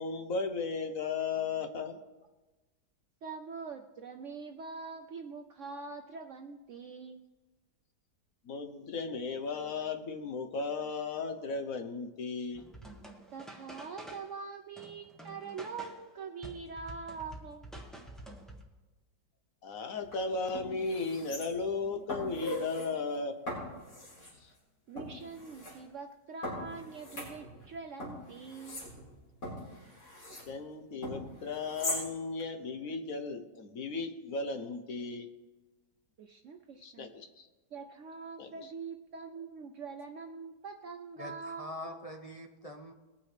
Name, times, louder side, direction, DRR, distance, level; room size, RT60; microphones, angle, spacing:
voice 1, 0.0-2.0 8.4-12.6 19.6-23.3 24.4-24.5 30.5-35.3 36.8-37.5 38.4-38.5, left 4 dB, 60° left, 7 dB, 1.2 m, -35 dB
voice 2, 3.2-7.2 13.3-17.7 23.7-23.8 24.9-28.9 36.2-37.1 37.7-42.0, right 5 dB, 60° right, 4 dB, 0.8 m, -44 dB
sound 1, 12.5-14.4 14.8-16.1 16.4-18.6, right 1 dB, ahead, 1.2 m, -48 dB
sound 2, 20.0-20.1 20.5-21.8 22.1-22.9 23.5-24.3 25.0-25.7 26.4-27.7 28.0-30.5 31.0-32.0 32.4-32.5, left 1 dB, 85° left, 5.2 m, -40 dB
voice 3, 41.2-42.9, left 1 dB, 30° left, 2 dB, 0.8 m, -44 dB
21.0 x 9.4 x 3.3 m, 1.2 s
omnidirectional pair, 1.8 m